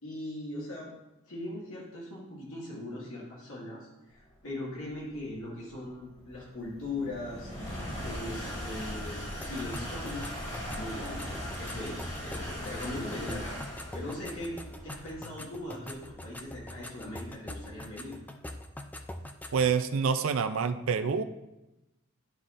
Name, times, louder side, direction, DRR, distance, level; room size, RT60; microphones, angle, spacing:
voice 1, 0.0-0.9 1.3-7.5 8.0-13.6 13.9-18.2, left 1 dB, 85° left, -6 dB, 1.9 m, -40 dB
sound 1, 4.5-17.8, equal, 35° left, 1.7 m, -40 dB
sound 2, 9.4-19.7, left 1 dB, 10° left, 0.3 m, -44 dB
voice 2, 19.5-21.2, right 6 dB, 65° right, 9 dB, 0.4 m, -27 dB
11.5 x 4.0 x 2.5 m, 0.96 s
head